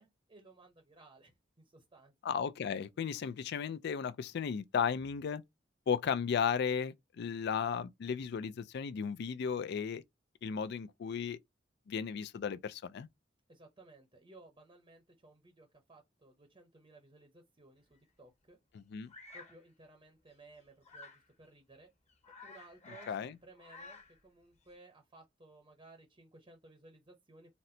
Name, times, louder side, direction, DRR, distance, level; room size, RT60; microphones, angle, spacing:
voice 1, 0.0-2.1 13.5-18.6 19.3-21.9 22.4-27.5, right 2 dB, 25° right, 0.7 m, -59 dB
voice 2, 2.2-5.4 5.9-10.0 10.4-11.4 11.9-13.1 18.7-19.1 23.1-23.4, left 7 dB, 60° left, 0.3 m, -35 dB
Bird vocalization bird call bird song, 19.1-19.6 20.8-21.2 21.7-21.8 22.1-23.3 23.5-24.2, left 3 dB, 35° left, 1.1 m, -52 dB
4.1 x 2.1 x 2.6 m
head